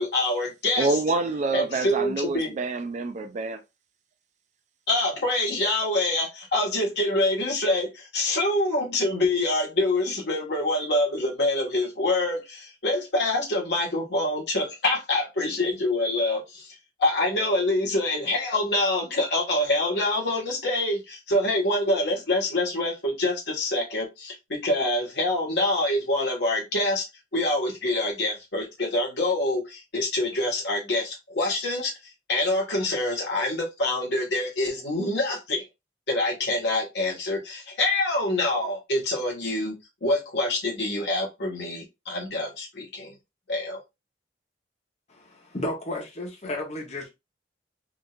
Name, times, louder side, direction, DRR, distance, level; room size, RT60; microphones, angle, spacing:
voice 1, 0.0-1.0 1.5-2.6 4.9-27.0 27.3-31.9 32.3-35.6 36.1-39.8 40.0-43.2 43.5-43.8, left 2 dB, 70° left, 1.5 m, -26 dB
voice 2, 0.8-3.6, right 3 dB, 40° right, 0.4 m, -27 dB
voice 3, 45.1-47.1, left 1 dB, 40° left, 1.0 m, -33 dB
3.7 x 2.7 x 2.4 m
head